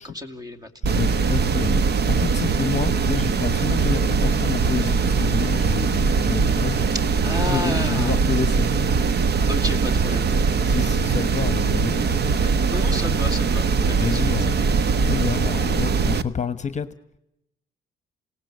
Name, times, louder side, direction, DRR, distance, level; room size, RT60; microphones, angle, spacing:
voice 1, 0.0-0.7 7.2-8.2 9.5-10.3 12.3-14.2, left 1 dB, 20° right, 9 dB, 2.5 m, -32 dB
voice 2, 0.8-6.8 7.4-8.7 9.1-9.2 10.6-12.1 14.0-14.5 15.0-16.9, left 6 dB, 35° left, 13 dB, 1.2 m, -29 dB
sound 1, 0.8-16.2, right 5 dB, 55° right, 1.2 m, -21 dB
28.0 x 18.0 x 9.7 m, 0.87 s
cardioid pair, 90°, 20 cm